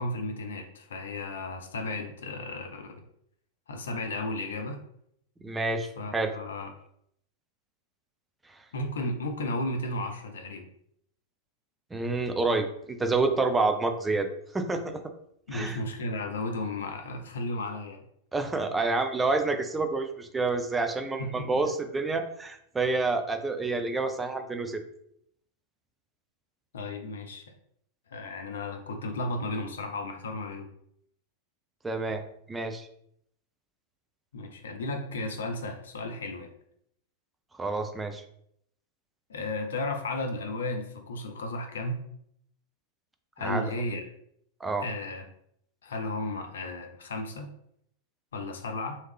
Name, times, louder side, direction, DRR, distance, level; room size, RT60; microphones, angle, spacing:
voice 1, 0.0-3.0 3.7-4.8 6.0-6.7 8.7-10.7 15.5-18.0 21.2-21.7 26.7-27.4 28.1-30.7 34.3-36.5 39.3-42.0 43.4-44.0 44.8-45.2 45.8-47.5 48.3-49.0, left 2 dB, 65° left, 5 dB, 0.6 m, -34 dB
voice 2, 5.4-6.3 11.9-14.3 14.5-15.0 15.5-15.8 18.3-24.8 31.8-32.2 32.5-32.9 37.6-38.2 43.4-43.6 44.6-44.8, right 3 dB, 10° right, 6 dB, 0.4 m, -28 dB
3.1 x 2.7 x 3.3 m, 0.71 s
figure-of-eight pair, 90°, 0 cm